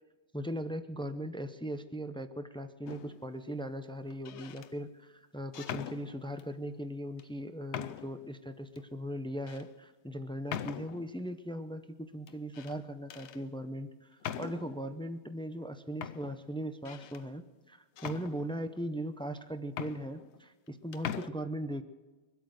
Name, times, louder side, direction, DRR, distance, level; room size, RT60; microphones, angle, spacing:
voice 1, 0.3-21.8, equal, 5° left, 10 dB, 0.5 m, -39 dB
sound 1, 2.9-3.3 4.1-4.7 5.5-6.5 7.2-7.3 7.7-8.2 8.8-8.9 9.5-9.7 10.5-11.2 12.3-12.8 13.1-13.4 14.2-14.8 15.6-15.7 16.0-17.2 18.0-18.8 19.4-19.5 19.7-20.7 20.9-21.3, left 9 dB, 75° left, 0.9 m, -41 dB
23.0 x 8.4 x 6.4 m, 1.2 s
omnidirectional pair, 1.2 m